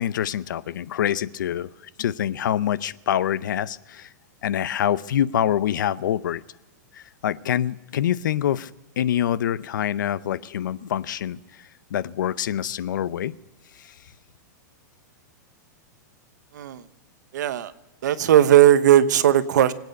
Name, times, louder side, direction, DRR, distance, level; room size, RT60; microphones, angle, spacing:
voice 1, 0.0-1.7 2.0-4.1 4.4-6.4 6.9-13.3 13.8-13.9, left 10 dB, 85° left, 18 dB, 0.6 m, -26 dB
voice 2, 17.3-17.7 18.0-19.7, right 11 dB, 70° right, 12 dB, 1.0 m, -17 dB
25.5 x 9.2 x 5.3 m, 1.1 s
supercardioid pair, 175°, 10 cm